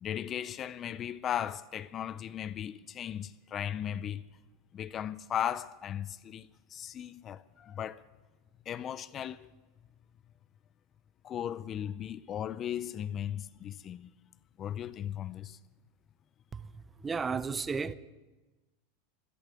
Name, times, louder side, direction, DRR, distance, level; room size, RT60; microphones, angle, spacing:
voice 1, 0.0-4.2 4.7-8.0 8.7-9.5 11.2-14.1 14.6-15.6, left 10 dB, 35° left, 0.5 m, -37 dB
voice 2, 17.0-17.9, right 5 dB, 20° right, 0.6 m, -33 dB
14.0 x 11.0 x 8.4 m
hypercardioid pair, 115°, 0 cm